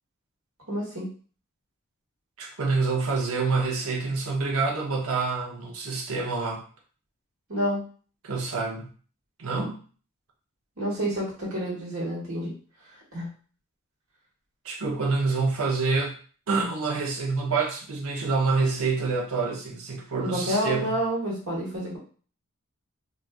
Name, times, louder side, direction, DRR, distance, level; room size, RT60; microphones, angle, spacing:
voice 1, 0.7-1.1 7.5-7.8 10.8-12.5 13.1-13.3 20.2-22.0, equal, 75° right, -3 dB, 1.4 m, -29 dB
voice 2, 2.4-6.6 8.2-8.9 9.4-9.8 14.6-16.1 16.5-21.0, right 4 dB, 90° right, 1 dB, 0.8 m, -27 dB
3.9 x 2.4 x 2.3 m, 0.41 s
head